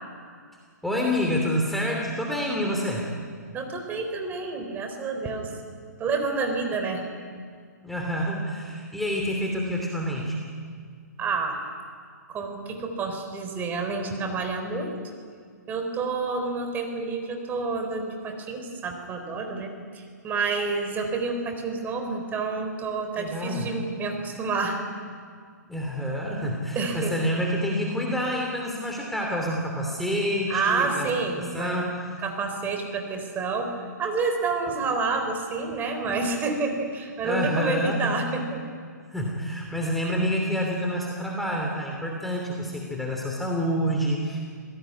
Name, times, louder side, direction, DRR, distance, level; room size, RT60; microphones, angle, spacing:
voice 1, 0.8-3.0 7.8-10.4 23.2-23.6 25.7-31.1 31.4-32.0 37.2-38.1 39.1-44.4, equal, ahead, -1 dB, 2.9 m, -28 dB
voice 2, 3.5-5.5 6.0-7.0 11.2-11.6 12.3-14.9 15.7-24.8 26.8-27.1 30.5-31.7 32.2-38.6, right 4 dB, 20° right, 4 dB, 4.0 m, -29 dB
26.0 x 18.0 x 9.6 m, 2.1 s
hypercardioid pair, 135°, 10 cm